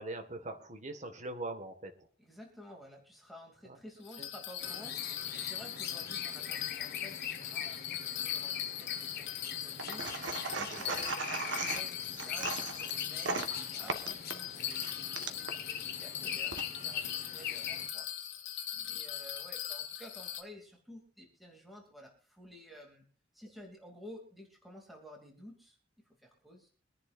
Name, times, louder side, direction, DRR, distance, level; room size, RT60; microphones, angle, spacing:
voice 1, 0.0-2.1 3.6-3.8 4.2-4.3 10.5-11.0, right 2 dB, 40° right, 6 dB, 1.6 m, -42 dB
voice 2, 2.2-18.1 18.3-18.5 18.7-23.1 23.3-25.8 26.2-26.7, equal, ahead, -1 dB, 2.6 m, -53 dB
Bell, 4.0-20.4, left 10 dB, 80° left, 1.3 m, -40 dB
sound 1, 4.6-17.9, left 8 dB, 55° left, 1.3 m, -43 dB
sound 2, 9.8-15.6 16.3-17.1, right 3 dB, 80° right, 1.4 m, -38 dB
24.5 x 10.5 x 2.5 m, 0.41 s
head